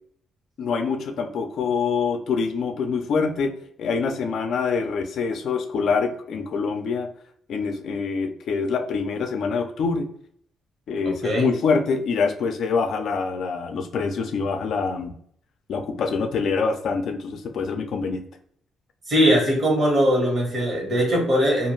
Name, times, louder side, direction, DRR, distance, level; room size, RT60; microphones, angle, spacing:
voice 1, 0.6-3.5 3.8-7.1 7.5-10.1 10.9-15.1 15.7-18.2, left 5 dB, 70° left, 6 dB, 0.4 m, -25 dB
voice 2, 11.0-11.4 19.1-21.7, equal, 45° right, -1 dB, 1.3 m, -20 dB
2.5 x 2.3 x 3.0 m, 0.64 s
cardioid pair, 90°, 0 cm